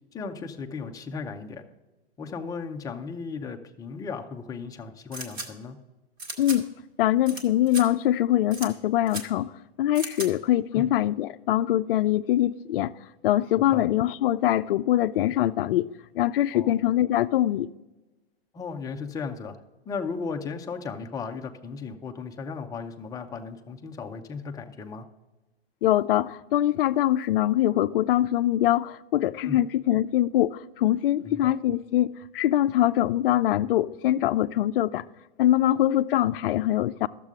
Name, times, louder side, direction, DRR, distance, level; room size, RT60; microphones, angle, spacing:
voice 1, 0.1-1.6 2.2-5.8 10.7-10.9 13.6-13.9 16.5-16.7 18.5-19.6 19.9-25.0 29.4-29.6 31.2-31.5, left 5 dB, 10° left, 0.6 m, -36 dB
sound 1, 5.1-5.5 6.2-6.6 7.3-7.4 7.7-7.8 8.5-8.7 9.1-9.2 10.0-10.3, right 2 dB, 30° right, 1.7 m, -35 dB
voice 2, 7.0-9.5 9.8-12.9 13.2-15.9 16.1-17.7 25.8-35.0 35.4-37.1, left 13 dB, 60° left, 0.5 m, -23 dB
12.0 x 7.4 x 3.7 m
hypercardioid pair, 130°, 32 cm